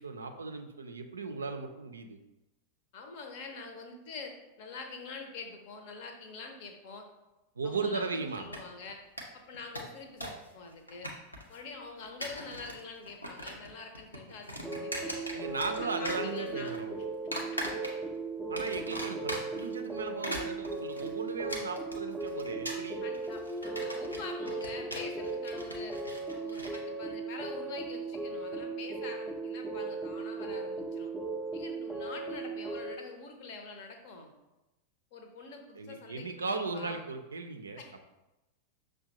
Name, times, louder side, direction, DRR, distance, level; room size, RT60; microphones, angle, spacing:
voice 1, 0.0-2.2 7.6-8.4 15.3-16.9 18.5-23.0 35.8-37.8, right 4 dB, 75° right, 6 dB, 0.4 m, -37 dB
voice 2, 2.9-7.1 7.6-9.0 9.3-11.1 11.5-15.2 15.7-16.8 17.4-17.5 18.6-18.7 19.1-19.2 23.0-26.0 26.3-31.1 31.5-34.3 35.1-37.0 37.8-37.9, left 4 dB, 50° left, 4 dB, 0.6 m, -45 dB
sound 1, 8.3-8.9 9.2-9.3 9.5-10.5 10.7-11.6 12.0-12.8 13.1-13.7 13.9-15.8 16.0-16.8 17.3-18.2 18.6-19.7 20.1-26.8, equal, 85° left, 0.6 m, -40 dB
sound 2, 14.6-33.0, right 3 dB, 5° left, 0.4 m, -37 dB
6.1 x 2.2 x 2.8 m, 1.0 s
figure-of-eight pair, 90°, 0 cm